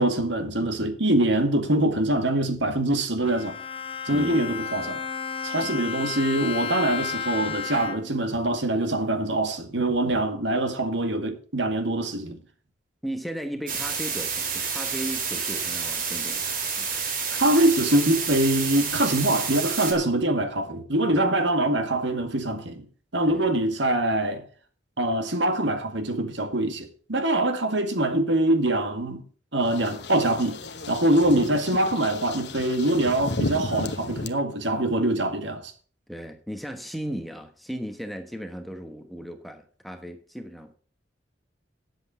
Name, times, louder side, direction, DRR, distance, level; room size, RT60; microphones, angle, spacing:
voice 1, 0.0-3.6 4.1-5.0 5.4-12.4 17.3-22.8 23.1-24.4 25.0-29.2 29.5-30.6 30.9-35.7, right 1 dB, 75° right, 2.0 m, -24 dB
Bowed string instrument, 3.2-8.3, left 7 dB, 30° left, 0.9 m, -33 dB
voice 2, 4.1-4.6 13.0-16.4 16.8-16.9 21.1-21.3 23.3-23.5 36.1-40.7, right 1 dB, ahead, 1.2 m, -36 dB
sound 1, 13.7-19.9, right 6 dB, 45° right, 3.3 m, -29 dB
sound 2, 29.6-34.3, left 2 dB, 60° left, 1.1 m, -34 dB
10.0 x 8.0 x 6.9 m
head